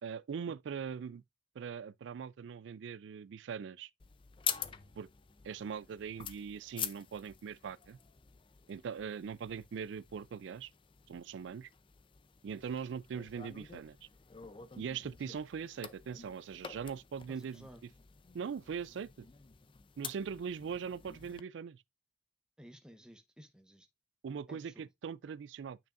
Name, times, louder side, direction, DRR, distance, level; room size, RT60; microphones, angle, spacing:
voice 1, 0.0-1.2 1.6-3.9 5.0-5.1 5.4-8.0 8.7-10.7 11.1-11.7 12.4-14.1 14.8-17.7 18.3-19.3 20.0-21.8 24.2-25.8, right 6 dB, 80° right, 0.3 m, -41 dB
sound 1, 4.0-21.4, left 8 dB, 30° left, 0.5 m, -47 dB
voice 2, 17.3-17.8 22.6-23.9 24.5-24.9, equal, 5° right, 0.9 m, -55 dB
9.1 x 5.4 x 2.5 m
head